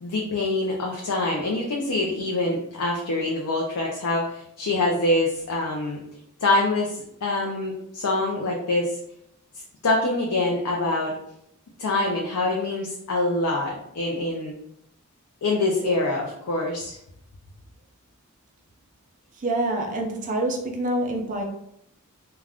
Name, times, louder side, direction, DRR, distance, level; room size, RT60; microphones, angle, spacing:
voice 1, 0.0-6.0 6.4-9.0 9.8-11.1 11.8-14.5 15.4-17.0, left 2 dB, 90° left, -1 dB, 0.5 m, -25 dB
voice 2, 19.4-21.4, right 1 dB, 35° right, 1 dB, 0.5 m, -26 dB
2.4 x 2.2 x 3.3 m, 0.73 s
head